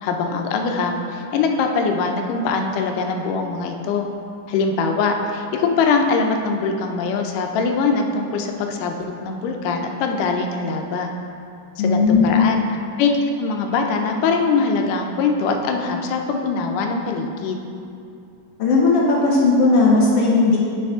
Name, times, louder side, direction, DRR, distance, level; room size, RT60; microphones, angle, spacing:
voice 1, 0.0-4.1 4.5-11.1 11.8-12.6 13.0-13.1 13.4-17.6, left 4 dB, 90° left, 3 dB, 2.3 m, -22 dB
voice 2, 11.8-12.4 18.6-20.6, left 3 dB, 70° left, -3 dB, 1.5 m, -16 dB
9.6 x 6.3 x 3.6 m, 2.6 s
omnidirectional pair, 3.6 m